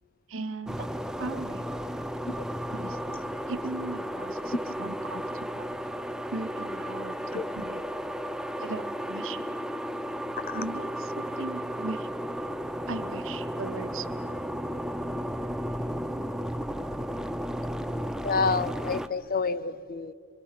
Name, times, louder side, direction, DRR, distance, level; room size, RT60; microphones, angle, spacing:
voice 1, 0.3-0.9 1.2-1.6 2.7-5.7 6.3-7.9 8.6-9.6 10.5-12.1 12.9-14.5, right 3 dB, 65° right, 10 dB, 1.1 m, -38 dB
sound 1, 0.7-19.1, equal, 5° right, 0.5 m, -34 dB
voice 2, 18.2-20.1, left 4 dB, 45° left, 15 dB, 0.7 m, -29 dB
27.5 x 23.0 x 5.8 m, 2.2 s
head